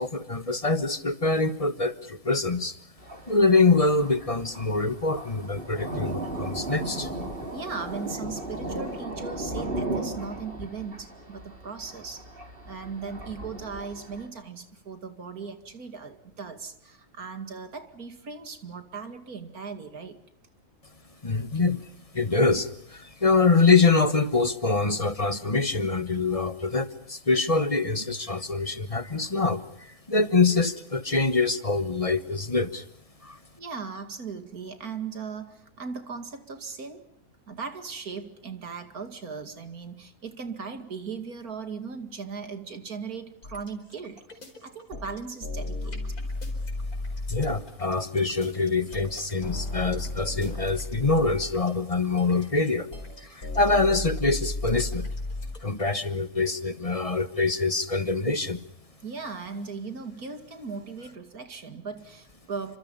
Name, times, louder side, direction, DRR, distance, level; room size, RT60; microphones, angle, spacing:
voice 1, 0.0-2.8 3.3-7.1 21.2-21.8 22.1-32.8 33.2-33.4 47.3-52.9 53.2-55.1 55.6-58.6, left 3 dB, 25° left, 13 dB, 1.2 m, -24 dB
Thunder, 3.0-14.3, right 1 dB, 35° right, 4.7 m, -36 dB
voice 2, 7.5-12.3 12.6-20.2 33.6-37.0 37.5-46.0 59.0-62.8, right 5 dB, 80° right, 9 dB, 2.8 m, -38 dB
sound 1, 43.4-55.8, left 2 dB, 80° left, 5.3 m, -34 dB
30.0 x 26.0 x 5.5 m, 0.66 s
omnidirectional pair, 1.5 m